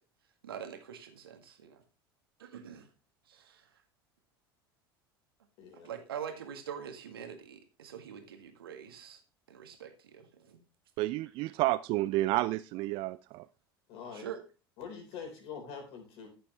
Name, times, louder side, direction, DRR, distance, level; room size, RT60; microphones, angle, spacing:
voice 1, 0.4-1.8 2.4-2.9 3.3-3.7 5.7-9.2 9.5-10.6 14.1-14.4, right 8 dB, 70° right, 1.8 m, -44 dB
voice 2, 5.6-5.9 13.9-14.3 14.8-16.3, left 6 dB, 50° left, 3.9 m, -44 dB
voice 3, 11.0-13.5, right 18 dB, 45° right, 0.4 m, -30 dB
14.0 x 7.0 x 3.1 m
figure-of-eight pair, 70°, 13 cm